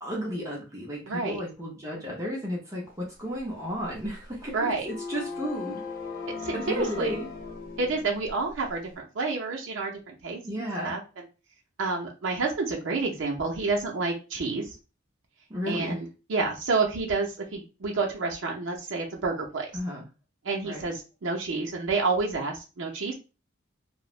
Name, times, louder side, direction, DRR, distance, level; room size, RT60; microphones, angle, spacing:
voice 1, 0.0-5.8 6.5-7.3 10.4-11.0 15.5-16.0 19.7-20.0 20.6-20.9, equal, 15° right, -4 dB, 0.6 m, -33 dB
voice 2, 1.1-1.4 4.5-4.9 6.4-7.1 7.8-11.0 11.8-14.7 15.7-19.7 20.4-23.1, right 3 dB, 65° right, -1 dB, 0.5 m, -29 dB
sound 1, 3.4-8.9, left 4 dB, 45° left, 0.5 m, -39 dB
3.0 x 2.0 x 2.3 m, 0.32 s
head